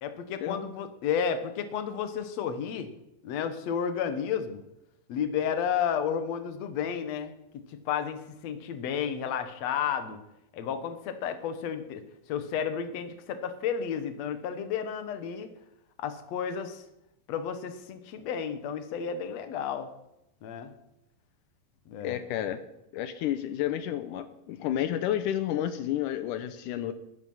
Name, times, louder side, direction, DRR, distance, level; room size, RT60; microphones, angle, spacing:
voice 1, 0.0-2.9 3.2-4.6 5.1-7.4 7.7-10.2 10.5-12.0 12.3-15.5 16.0-16.8 17.3-19.9 20.4-20.7 21.9-22.2, left 7 dB, 60° left, 9 dB, 1.8 m, -32 dB
voice 2, 22.0-22.6 22.9-26.9, left 11 dB, 90° left, 11 dB, 1.8 m, -31 dB
20.0 x 10.5 x 5.6 m, 0.87 s
omnidirectional pair, 4.7 m